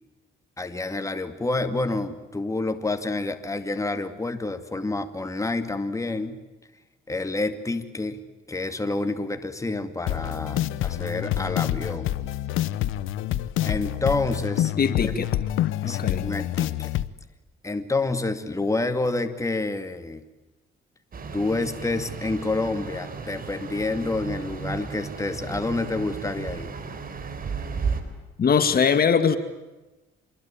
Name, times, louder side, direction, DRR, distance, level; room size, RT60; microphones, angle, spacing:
voice 1, 0.6-6.4 7.1-8.2 8.5-12.1 13.6-14.7 15.8-16.9 17.6-20.2 21.3-26.7, left 2 dB, 15° left, 7 dB, 2.4 m, -28 dB
sound 1, 10.1-17.1, left 13 dB, 85° left, 1.0 m, -27 dB
voice 2, 14.8-15.3 15.8-16.2 28.4-29.4, left 6 dB, 50° left, 9 dB, 2.3 m, -21 dB
sound 2, 21.1-28.0, right 5 dB, 45° right, 4.2 m, -34 dB
27.0 x 22.0 x 8.8 m, 1.1 s
cardioid pair, 90°, 20 cm